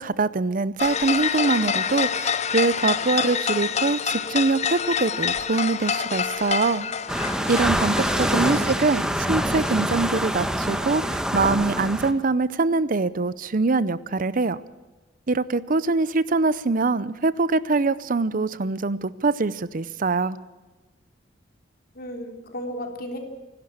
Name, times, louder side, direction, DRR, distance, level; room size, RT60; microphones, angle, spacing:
voice 1, 0.0-6.9 7.5-14.6 15.3-20.4, right 3 dB, 45° right, 17 dB, 0.7 m, -23 dB
sound 1, 0.8-9.2 9.5-10.4, left 7 dB, 40° left, 0.8 m, -27 dB
sound 2, 7.1-12.1, equal, 5° right, 1.3 m, -25 dB
voice 2, 8.1-8.6 21.9-23.2, left 1 dB, 55° left, 4 dB, 3.6 m, -34 dB
26.5 x 12.0 x 8.7 m, 1.2 s
head